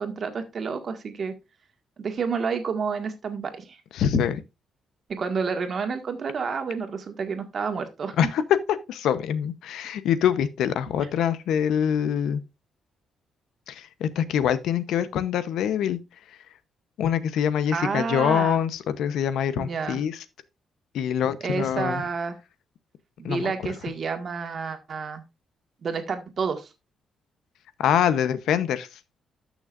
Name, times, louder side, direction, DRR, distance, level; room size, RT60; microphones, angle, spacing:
voice 1, 0.0-1.3 2.0-3.8 5.1-8.3 17.7-18.6 19.6-20.0 21.4-22.4 23.2-25.2 25.8-26.7, right 5 dB, 45° right, 1.7 m, -29 dB
voice 2, 3.9-4.4 8.2-8.4 8.9-12.4 13.7-16.0 17.0-20.2 20.9-22.0 23.2-23.7 27.8-28.9, left 9 dB, 85° left, 0.8 m, -25 dB
13.0 x 6.3 x 2.5 m
cardioid pair, 115°, 0 cm